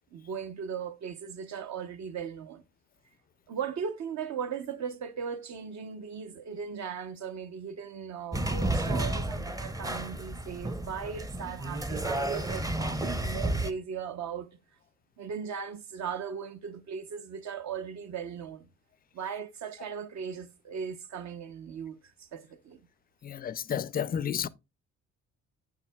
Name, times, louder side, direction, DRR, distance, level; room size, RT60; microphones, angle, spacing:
voice 1, 0.1-2.6 3.5-14.5 15.2-18.7 19.1-22.8, right 7 dB, 65° right, 0.8 m, -38 dB
sound 1, 8.3-13.7, right 1 dB, 10° right, 0.6 m, -31 dB
voice 2, 23.2-24.5, left 8 dB, 30° left, 0.4 m, -31 dB
8.1 x 7.3 x 2.2 m
cardioid pair, 90°, 30 cm